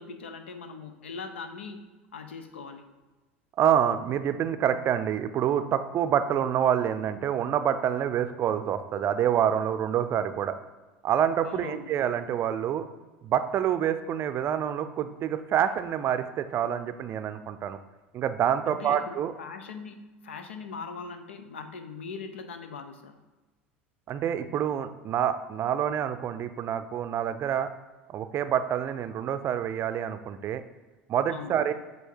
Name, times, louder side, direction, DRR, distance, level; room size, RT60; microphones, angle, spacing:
voice 1, 0.0-1.8 2.1-2.8 11.5-12.0 18.7-23.1 31.3-31.6, left 5 dB, 75° left, 8 dB, 0.6 m, -41 dB
voice 2, 3.6-10.6 11.0-12.8 13.2-17.8 18.1-19.3 24.1-27.7 28.1-30.6 31.1-31.7, right 9 dB, 40° right, 10 dB, 0.5 m, -27 dB
7.8 x 2.8 x 4.5 m, 1.2 s
figure-of-eight pair, 75°, 6 cm